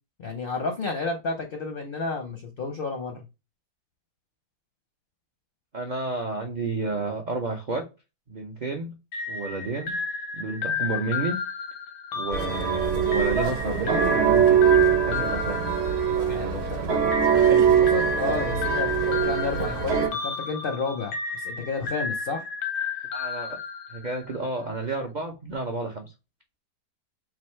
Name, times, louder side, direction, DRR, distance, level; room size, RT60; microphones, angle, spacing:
voice 1, 0.2-3.2 16.3-16.8 17.3-22.4, left 4 dB, 55° left, 0.6 m, -31 dB
voice 2, 5.7-7.8 8.3-8.9 9.3-10.0 10.3-11.4 12.1-17.0 23.1-23.6 23.9-26.1, right 3 dB, 65° right, 0.4 m, -31 dB
sound 1, 9.1-16.5 17.1-24.4, left 5 dB, 85° left, 1.4 m, -32 dB
sound 2, 12.3-20.1, right 8 dB, 45° right, 1.0 m, -22 dB
3.9 x 2.6 x 4.4 m
omnidirectional pair, 1.8 m